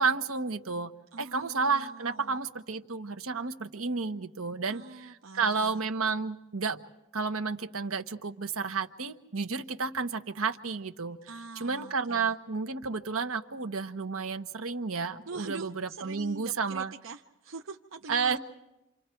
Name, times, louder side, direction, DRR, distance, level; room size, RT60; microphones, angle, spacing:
voice 1, 0.0-6.8 7.1-11.2 11.6-16.9 18.1-18.4, right 4 dB, 90° right, 8 dB, 1.2 m, -31 dB
voice 2, 1.1-2.4 4.7-5.8 11.3-12.4 15.3-18.4, right 3 dB, 70° right, 5 dB, 0.7 m, -44 dB
28.5 x 27.0 x 4.6 m, 0.92 s
head